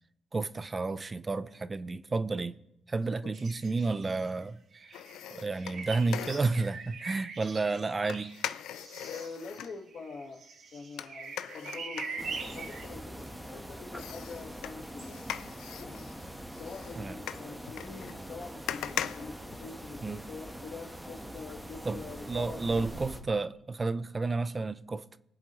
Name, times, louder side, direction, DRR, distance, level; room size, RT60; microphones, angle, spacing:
voice 1, 0.3-2.5 2.9-4.6 5.3-8.3 17.0-17.2 20.0-20.2 21.9-25.0, right 3 dB, 25° right, 0.5 m, -31 dB
sound 1, 3.3-4.4 4.7-12.9, right 4 dB, 60° right, 1.4 m, -43 dB
sound 2, 4.9-6.7 8.1-9.8 11.0-13.5 13.9-20.2 20.5-20.6, left 11 dB, 85° left, 0.4 m, -41 dB
voice 2, 9.0-10.4 10.7-15.2 15.8-16.1 16.5-22.9, left 4 dB, 60° left, 1.6 m, -45 dB
sound 3, 12.2-23.2, equal, 5° right, 1.3 m, -44 dB
21.5 x 7.8 x 3.1 m
cardioid pair, 90°, 0 cm